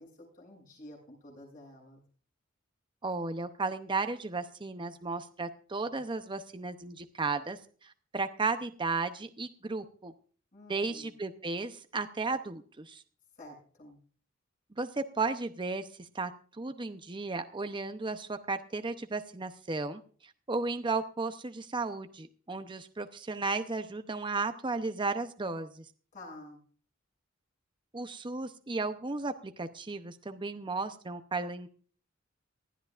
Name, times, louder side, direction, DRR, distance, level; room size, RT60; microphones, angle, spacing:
voice 1, 0.0-2.0 10.5-11.2 13.4-14.0 26.1-26.6, left 1 dB, 45° left, -1 dB, 7.8 m, -50 dB
voice 2, 3.0-10.1 10.7-13.0 14.7-25.9 27.9-31.7, right 3 dB, 25° right, 8 dB, 0.7 m, -34 dB
19.5 x 13.0 x 2.5 m, 0.41 s
head